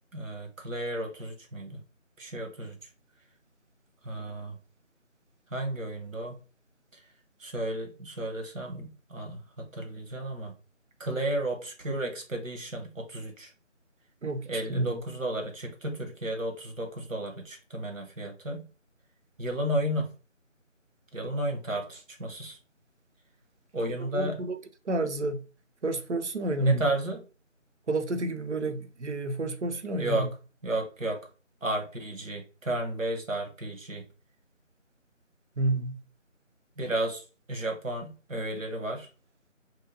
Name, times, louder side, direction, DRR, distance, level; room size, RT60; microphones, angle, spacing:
voice 1, 0.1-1.8 2.2-2.8 4.0-4.6 5.5-6.3 7.4-10.5 11.0-13.5 14.5-18.7 19.4-20.1 21.1-22.6 23.7-24.4 26.6-27.2 30.0-30.3 30.6-31.2 31.6-34.0 36.8-37.2 37.5-39.1, right 1 dB, 80° right, 1.1 m, -33 dB
voice 2, 14.2-14.9 24.1-24.6 24.9-25.4 25.8-26.8 27.9-30.3 35.6-36.0, right 2 dB, 60° right, 0.5 m, -30 dB
3.0 x 2.8 x 2.6 m
figure-of-eight pair, 170°, 39 cm